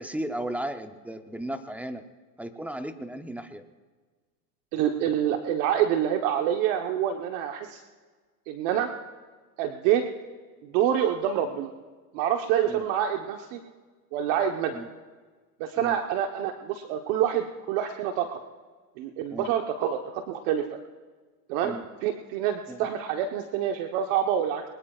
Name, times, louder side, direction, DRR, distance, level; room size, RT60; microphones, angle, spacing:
voice 1, 0.0-2.0 2.4-3.6 12.6-12.9 14.7-14.9 15.8-16.0 19.3-19.5 21.6-21.9 22.7-22.9, right 1 dB, 5° right, 8 dB, 0.7 m, -35 dB
voice 2, 4.7-7.8 8.5-8.9 9.6-10.0 10.6-11.7 12.1-13.6 14.1-14.8 15.6-18.4 19.0-20.6 21.5-21.7 22.0-24.6, right 10 dB, 55° right, 4 dB, 1.2 m, -26 dB
23.0 x 20.5 x 2.4 m, 1.4 s
supercardioid pair, 125°, 48 cm